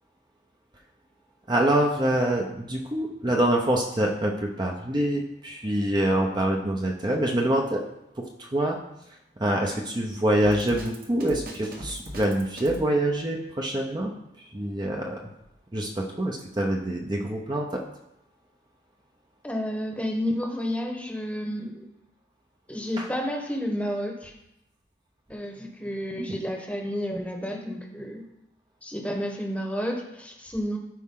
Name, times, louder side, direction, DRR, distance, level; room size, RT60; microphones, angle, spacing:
voice 1, 1.5-7.8 8.2-8.8 9.4-14.1 14.4-15.2 15.7-17.8 23.0-23.1 26.2-26.4, right 1 dB, 25° right, 0 dB, 0.8 m, -25 dB
Drum kit, 10.4-12.8, equal, 55° right, 1.5 m, -38 dB
voice 2, 19.4-21.9 22.7-24.3 25.3-28.2 28.8-30.8, equal, 10° left, 2 dB, 1.1 m, -31 dB
14.0 x 4.8 x 3.8 m, 0.85 s
head